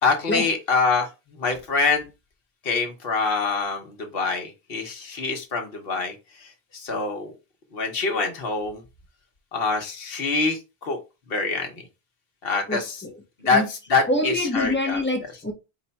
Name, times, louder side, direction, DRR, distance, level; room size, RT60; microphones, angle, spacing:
voice 1, 0.0-2.1 2.6-6.2 6.4-7.3 7.7-8.8 9.5-11.0 11.3-11.7 12.4-13.0 13.4-15.0, left 4 dB, 65° left, 1.2 m, -25 dB
voice 2, 12.7-13.1 13.4-13.7 14.1-15.5, left 1 dB, 15° left, 0.6 m, -25 dB
4.7 x 2.2 x 4.0 m
omnidirectional pair, 1.1 m